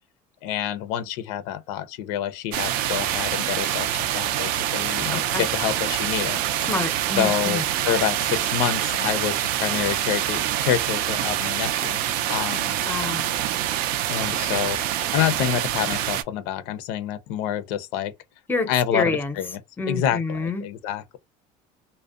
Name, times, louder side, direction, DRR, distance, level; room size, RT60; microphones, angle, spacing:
voice 1, 0.4-6.4 7.2-12.0 12.3-12.8 14.1-18.1 18.7-19.6 19.9-21.2, left 10 dB, 80° left, 0.4 m, -27 dB
sound 1, 2.5-16.2, right 12 dB, 65° right, 0.4 m, -25 dB
voice 2, 5.1-5.5 6.7-7.6 12.9-13.3 18.5-19.4 19.8-20.6, left 3 dB, 15° left, 0.6 m, -27 dB
2.5 x 2.1 x 2.3 m
supercardioid pair, 105°, 16 cm